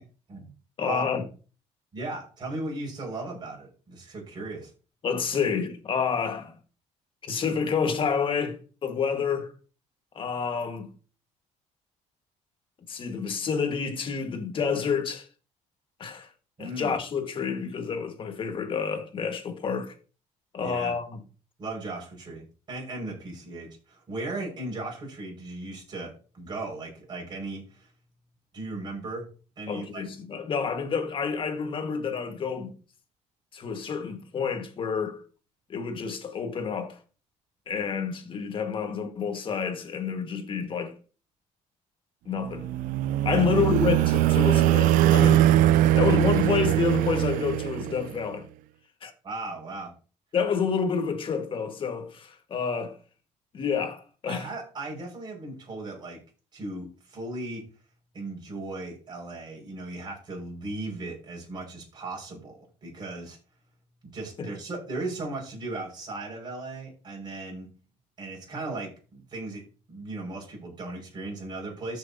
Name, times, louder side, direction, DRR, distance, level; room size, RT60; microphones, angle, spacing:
voice 1, 0.8-1.2 5.0-6.6 7.2-9.5 10.1-10.9 12.9-15.3 16.0-16.3 16.6-19.9 20.5-21.2 29.7-32.8 33.5-35.2 35.7-37.0 37.7-40.9 42.2-42.7 43.2-45.4 45.9-48.5 49.0-49.1 50.3-53.0 53.5-54.5 64.4-64.5, left 6 dB, 40° left, 1.6 m, -29 dB
voice 2, 1.9-4.7 16.6-17.0 20.6-20.9 21.6-27.9 28.5-29.3 29.6-30.0 43.2-43.5 49.2-49.9 54.3-56.2 56.5-57.6 58.1-63.4 64.1-67.7 68.2-72.0, right 2 dB, 35° right, 5.4 m, -37 dB
sound 1, 42.5-48.2, right 13 dB, 85° right, 0.4 m, -22 dB
14.0 x 6.4 x 2.8 m
cardioid pair, 135°, 14 cm